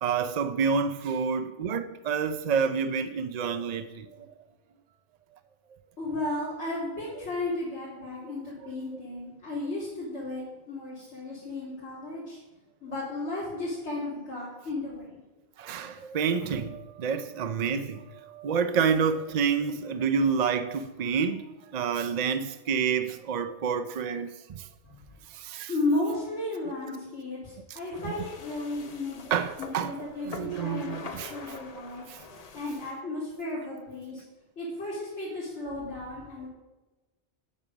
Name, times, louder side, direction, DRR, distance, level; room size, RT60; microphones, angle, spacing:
voice 1, 0.0-4.3 8.6-8.7 15.6-24.7 25.3-25.7 27.7-27.8 28.0-28.1 29.3-31.7 32.1-32.2, right 6 dB, 60° right, 0.4 m, -29 dB
voice 2, 6.0-12.4 12.8-15.2 24.8-24.9 25.7-29.3 29.6-32.0 32.5-34.2 34.6-36.5, left 2 dB, 70° left, 2.7 m, -34 dB
sound 1, 27.9-32.9, left 5 dB, 40° left, 0.7 m, -45 dB
9.3 x 7.2 x 5.1 m
omnidirectional pair, 1.2 m